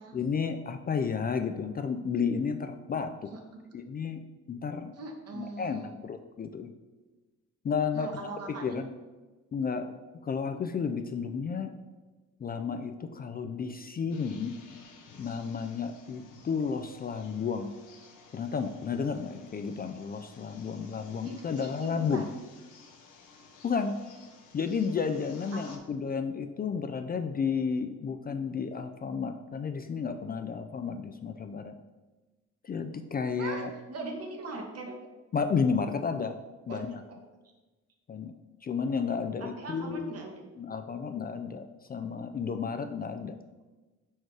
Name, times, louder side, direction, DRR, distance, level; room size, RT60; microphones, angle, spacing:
voice 1, 0.1-3.3 3.7-4.2 4.5-4.9 5.3-6.7 7.6-8.1 8.6-8.9 9.5-9.9 10.2-11.7 12.4-14.5 15.2-17.7 18.3-22.2 23.6-23.9 24.5-31.7 32.6-33.7 35.3-36.3 36.7-37.0 38.1-38.3 38.6-40.1 40.6-43.4, left 6 dB, 30° left, 7 dB, 0.4 m, -32 dB
voice 2, 5.0-5.9 7.9-8.8 21.2-22.3 25.5-25.8 33.4-35.1 36.7-37.2 39.4-40.5, right 2 dB, 55° right, 2 dB, 1.3 m, -41 dB
sound 1, 14.1-25.8, left 4 dB, 90° left, 0.9 m, -55 dB
4.6 x 4.5 x 4.7 m, 1.2 s
cardioid pair, 90°, 30 cm